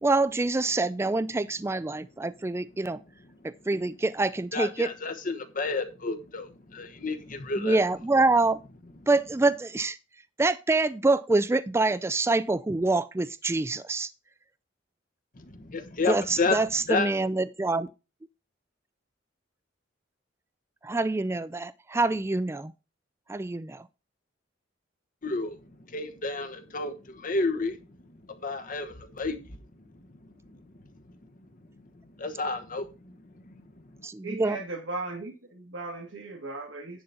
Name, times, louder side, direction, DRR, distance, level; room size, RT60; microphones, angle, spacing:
voice 1, 0.0-3.0 3.4-4.9 7.6-8.6 9.1-10.0 10.4-14.1 16.1-17.9 20.8-22.7 23.3-23.9 34.0-34.6, right 2 dB, 15° right, 0.3 m, -26 dB
voice 2, 4.5-7.8 15.4-16.6 16.9-17.1 25.2-25.6 25.9-27.8 28.3-29.6 30.5-30.6 32.2-33.1 33.4-33.6, left 3 dB, 45° left, 1.1 m, -31 dB
voice 3, 34.2-37.0, right 2 dB, 85° right, 1.7 m, -37 dB
10.5 x 4.0 x 5.7 m
head